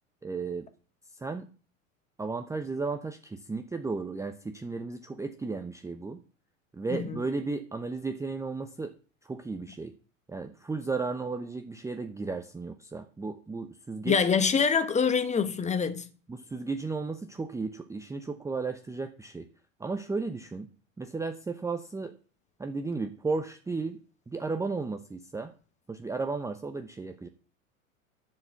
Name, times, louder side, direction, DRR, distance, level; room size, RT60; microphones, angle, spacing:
voice 1, 0.2-0.7 1.2-1.5 2.2-6.2 6.7-8.9 9.2-9.9 10.3-14.2 16.3-19.5 19.8-20.7 21.0-22.1 22.6-24.0 24.3-25.5 25.9-27.3, right 4 dB, 5° right, 0.7 m, -34 dB
voice 2, 14.0-16.1, left 6 dB, 15° left, 1.2 m, -25 dB
10.5 x 5.0 x 7.8 m
hypercardioid pair, 105°, 41 cm